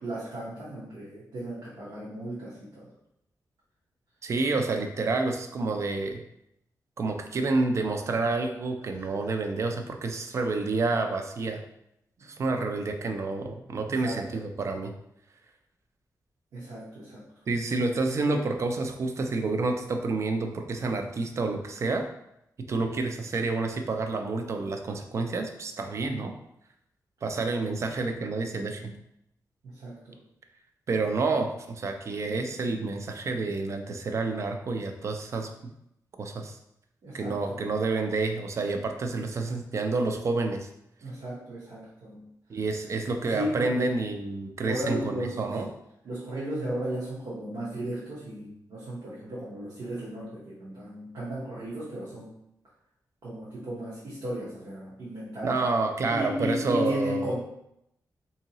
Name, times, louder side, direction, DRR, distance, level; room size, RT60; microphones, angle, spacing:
voice 1, 0.0-2.9 8.9-9.3 12.2-12.3 13.9-14.4 16.5-17.2 29.6-30.2 37.0-37.7 41.0-42.3 43.3-43.8 44.6-45.6 46.0-52.3 53.2-55.6 56.1-57.4, equal, 70° right, -8 dB, 0.9 m, -35 dB
voice 2, 4.2-6.2 7.0-11.6 12.2-14.9 17.5-22.1 22.7-26.3 27.2-29.0 30.9-35.7 36.2-36.6 37.1-40.7 42.5-45.7 55.4-57.3, right 3 dB, 45° right, 5 dB, 0.4 m, -29 dB
3.7 x 2.7 x 2.8 m, 0.80 s
wide cardioid pair, 150°, 7 cm